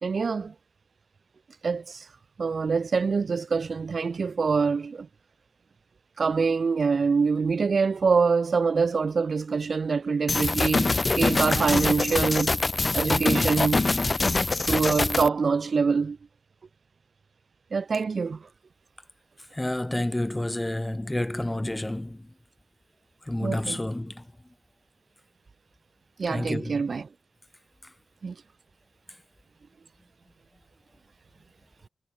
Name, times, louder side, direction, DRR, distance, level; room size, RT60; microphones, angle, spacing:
voice 1, 0.0-0.5 1.6-2.1 2.4-5.1 6.2-12.6 12.9-13.9 14.6-16.2 17.7-18.5 23.4-23.8 26.2-27.1 28.2-28.3, right 5 dB, 55° right, 1.6 m, -25 dB
sound 1, 10.3-15.3, left 3 dB, 35° left, 1.6 m, -24 dB
voice 2, 19.5-22.3 23.3-24.2 26.3-26.8, left 1 dB, 15° left, 4.9 m, -29 dB
cardioid pair, 60°, 0 cm